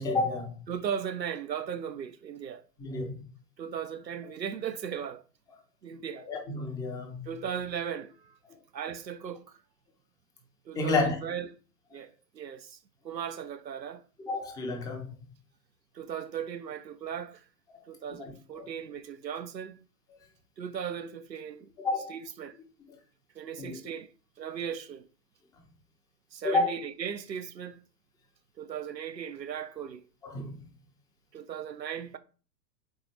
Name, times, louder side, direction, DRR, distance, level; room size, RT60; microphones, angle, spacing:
voice 1, 0.0-0.6 2.8-3.2 6.2-7.3 10.7-11.2 14.2-15.1 18.2-18.6 21.8-22.2 23.6-23.7 26.4-26.7 30.2-30.7, left 3 dB, 10° left, 0.5 m, -30 dB
voice 2, 0.7-2.6 3.6-5.2 5.8-6.3 7.2-8.4 8.7-9.6 10.7-11.6 11.9-12.8 13.0-14.0 15.9-17.5 17.9-19.8 20.6-21.7 22.1-22.6 23.3-24.1 24.4-25.1 26.3-27.8 28.6-30.1 31.3-32.2, right 8 dB, 85° right, 0.6 m, -37 dB
4.4 x 4.0 x 3.0 m
figure-of-eight pair, 100°, 49 cm